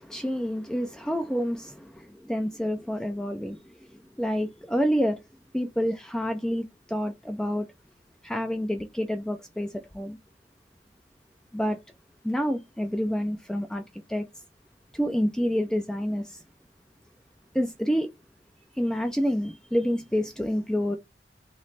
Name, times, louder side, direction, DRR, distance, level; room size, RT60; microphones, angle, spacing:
voice 1, 0.0-3.6 4.2-5.2 5.5-7.7 8.2-10.2 11.5-11.8 12.2-13.8 14.1-14.3 14.9-16.4 17.5-18.1 18.8-21.0, equal, 5° left, 0.4 m, -28 dB
3.1 x 3.0 x 4.0 m
head